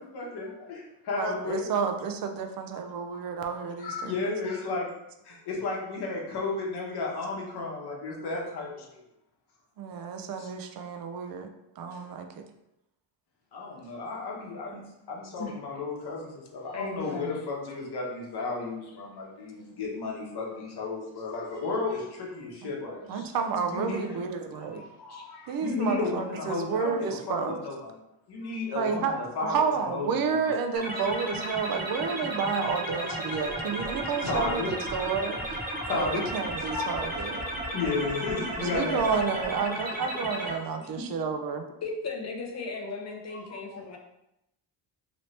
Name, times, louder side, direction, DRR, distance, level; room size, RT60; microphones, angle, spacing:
voice 1, 0.0-1.7 3.1-3.2 3.5-4.9 5.2-9.0 11.9-12.0 13.5-14.8 15.1-23.2 23.7-24.1 24.5-27.9 28.3-30.5 32.5-35.1 35.6-36.2 36.7-36.9 37.7-39.3 40.1-40.2 40.8-41.0 43.3-44.0, left 3 dB, 55° left, -2 dB, 1.0 m, -34 dB
voice 2, 1.2-4.3 9.8-11.5 11.8-12.3 22.6-22.7 23.1-24.8 25.5-27.6 28.8-35.4 35.9-37.4 38.6-41.6, right 6 dB, 50° right, 6 dB, 0.5 m, -30 dB
voice 3, 16.7-17.4 23.1-23.3 25.1-25.2 41.8-44.0, left 4 dB, 35° left, 1 dB, 0.6 m, -37 dB
sound 1, 30.7-40.5, right 1 dB, 20° right, 0.9 m, -34 dB
Purr, 33.3-39.6 40.4-40.5, right 3 dB, 80° right, 0.8 m, -49 dB
3.0 x 2.7 x 3.2 m, 0.87 s
cardioid pair, 110°, 48 cm